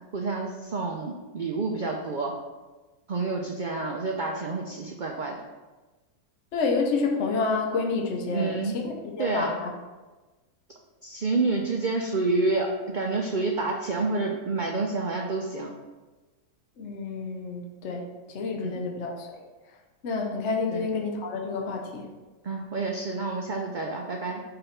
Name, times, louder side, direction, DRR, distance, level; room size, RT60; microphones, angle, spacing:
voice 1, 0.1-2.3 3.1-5.3 8.3-8.7 9.2-9.6 11.0-15.7 18.6-18.9 20.7-20.9 22.4-24.4, right 3 dB, 85° right, 1 dB, 0.4 m, -28 dB
voice 2, 6.5-9.7 16.8-18.1 18.3-19.3 20.0-22.1, left 4 dB, 55° left, 1 dB, 1.1 m, -29 dB
5.7 x 3.4 x 5.6 m, 1.2 s
omnidirectional pair, 1.6 m